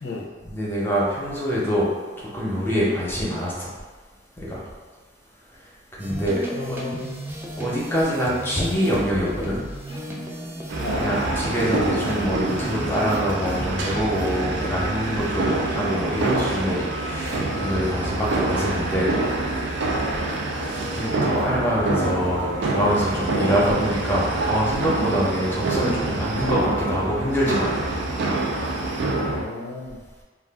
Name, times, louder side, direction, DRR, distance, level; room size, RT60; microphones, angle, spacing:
voice 1, 0.4-1.9 2.2-3.7 4.4-4.6 5.9-6.4 7.6-9.6 11.0-19.1 19.7-19.8 20.9-27.7, equal, 10° left, -6 dB, 0.7 m, -25 dB
sound 1, 6.0-14.7, right 1 dB, 10° right, 0.3 m, -35 dB
voice 2, 6.5-7.2 10.8-11.1 29.1-30.0, left 2 dB, 85° left, 0 dB, 0.5 m, -33 dB
Plucked string instrument, 6.9-23.7, equal, 30° right, 0.7 m, -43 dB
sound 2, 10.7-29.4, right 2 dB, 85° right, 0.4 m, -26 dB
2.4 x 2.3 x 3.4 m, 1.4 s
head